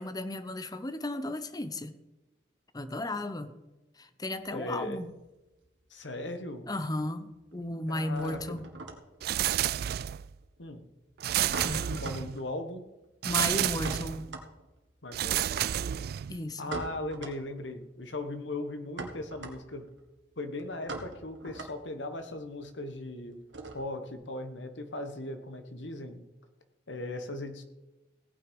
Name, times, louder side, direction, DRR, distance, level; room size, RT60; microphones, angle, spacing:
voice 1, 0.0-1.9 2.7-3.5 4.0-5.1 6.7-8.7 11.6-12.1 13.2-14.3 16.3-16.8, left 1 dB, 20° left, 11 dB, 0.8 m, -34 dB
sound 1, 4.3-5.9 6.1-6.8 7.1-24.1, right 3 dB, 80° right, 1.9 m, -44 dB
voice 2, 4.5-5.0 5.9-6.7 7.9-8.6 10.6-10.9 12.0-12.8 15.0-15.6 16.6-19.9 20.4-23.4 23.7-26.2 26.9-27.6, left 2 dB, 85° left, 9 dB, 1.4 m, -38 dB
sound 2, 9.2-10.3 11.2-12.4 13.2-14.3 15.1-16.4, right 11 dB, 55° right, 0.3 m, -30 dB
16.5 x 9.2 x 5.3 m, 1.1 s
head